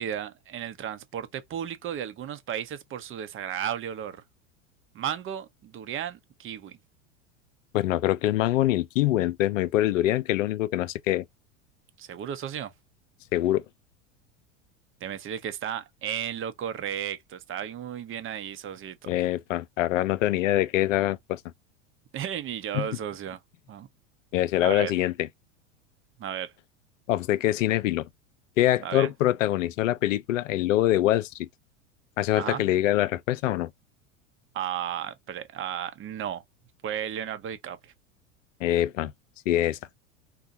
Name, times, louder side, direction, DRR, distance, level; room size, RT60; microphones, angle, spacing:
voice 1, 0.0-4.2 4.9-6.8 12.0-12.7 15.0-19.1 22.1-23.4 23.7-23.9 24.6-24.9 26.2-26.5 28.8-29.1 32.4-32.6 34.5-36.4 36.8-37.9, right 9 dB, 30° right, 0.8 m, -34 dB
voice 2, 7.7-11.2 13.3-13.6 19.1-21.4 22.7-22.9 24.3-25.1 27.1-28.1 28.6-31.5 32.2-33.7 38.6-39.1 39.5-39.8, left 14 dB, 75° left, 0.5 m, -24 dB
4.0 x 2.2 x 2.7 m
hypercardioid pair, 95°, 39 cm